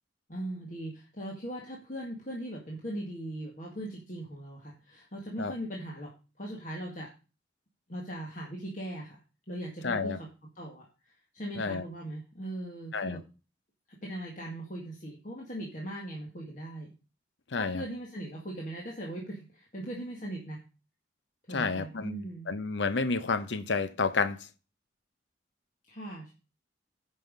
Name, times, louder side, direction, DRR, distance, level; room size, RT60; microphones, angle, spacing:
voice 1, 0.3-6.1 6.4-7.1 7.9-9.2 9.5-10.3 10.6-13.2 14.0-16.9 17.6-20.6 21.5-22.5 25.9-26.3, right 1 dB, 45° left, 1.8 m, -39 dB
voice 2, 9.8-10.2 11.6-11.8 12.9-13.2 17.5-17.8 21.5-24.4, left 4 dB, 85° left, 0.7 m, -30 dB
9.0 x 5.6 x 5.4 m
head